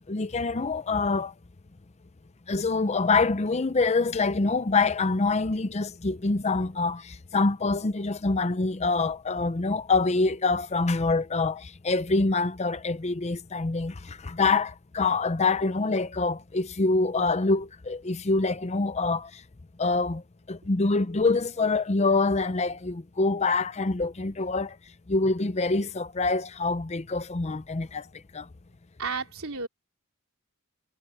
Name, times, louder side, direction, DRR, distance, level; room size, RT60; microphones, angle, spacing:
voice 1, 0.1-1.3 2.5-19.3 19.8-20.2 20.5-24.7 25.1-28.0 28.3-28.4, left 3 dB, 30° left, 0.6 m, -25 dB
voice 2, 29.0-29.7, right 4 dB, 70° right, 3.3 m, -32 dB
head